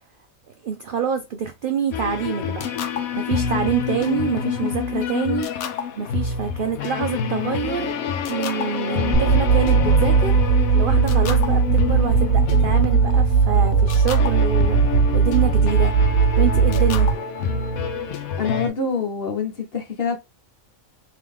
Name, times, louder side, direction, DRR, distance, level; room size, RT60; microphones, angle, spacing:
voice 1, 0.6-2.7 3.1-8.0 8.3-14.8 15.1-15.9 16.4-17.1, right 7 dB, 75° right, 0.4 m, -26 dB
Experimental Guitar and drum machine, 1.9-18.7, left 6 dB, 80° left, 1.1 m, -27 dB
sound 1, 9.1-18.1, right 5 dB, 10° left, 1.7 m, -18 dB
voice 2, 18.4-20.2, left 5 dB, 50° left, 1.0 m, -25 dB
3.8 x 2.9 x 3.3 m
omnidirectional pair, 1.5 m